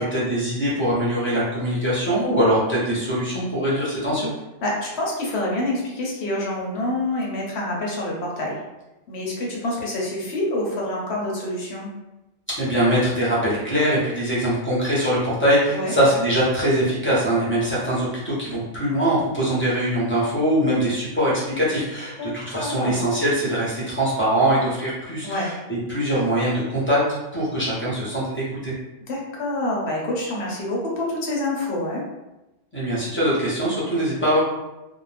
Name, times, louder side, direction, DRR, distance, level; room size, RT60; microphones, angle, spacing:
voice 1, 0.0-4.3 12.5-27.0 27.3-28.7 32.7-34.4, equal, 10° left, -9 dB, 0.7 m, -22 dB
voice 2, 4.6-8.6 9.1-11.9 15.7-15.9 22.2-23.0 25.2-25.5 29.1-32.0, left 1 dB, 60° left, -3 dB, 1.0 m, -27 dB
2.6 x 2.0 x 3.2 m, 1.0 s
omnidirectional pair, 1.3 m